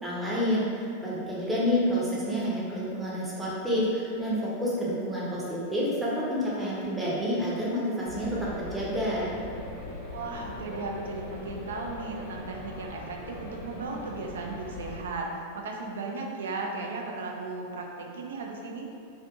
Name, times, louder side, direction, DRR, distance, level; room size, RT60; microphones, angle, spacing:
voice 1, 0.0-9.3, equal, 10° right, -7 dB, 0.6 m, -29 dB
sound 1, 8.0-15.0, left 2 dB, 65° left, 0.5 m, -40 dB
voice 2, 10.1-15.3 15.5-18.9, right 3 dB, 60° right, 0 dB, 0.3 m, -36 dB
2.5 x 2.4 x 2.4 m, 2.4 s
figure-of-eight pair, 90°, 0 cm